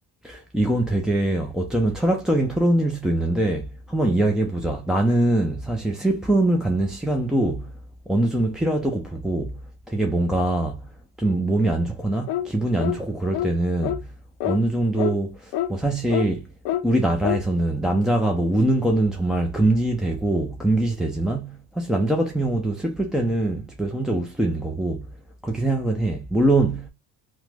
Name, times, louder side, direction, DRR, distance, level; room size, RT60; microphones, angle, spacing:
voice 1, 0.2-7.7 8.1-9.6 9.9-10.8 11.2-14.0 14.4-16.5 16.8-25.1 25.4-26.9, right 1 dB, ahead, 0.4 m, -23 dB
sound 1, 12.3-12.5 12.8-13.0 13.3-13.5 13.8-14.0 14.4-14.6 15.0-15.1 15.5-15.7 16.1-16.3 16.7-16.8 17.2-17.4, left 12 dB, 80° left, 0.6 m, -26 dB
2.9 x 2.2 x 3.3 m
cardioid pair, 95°, 40 cm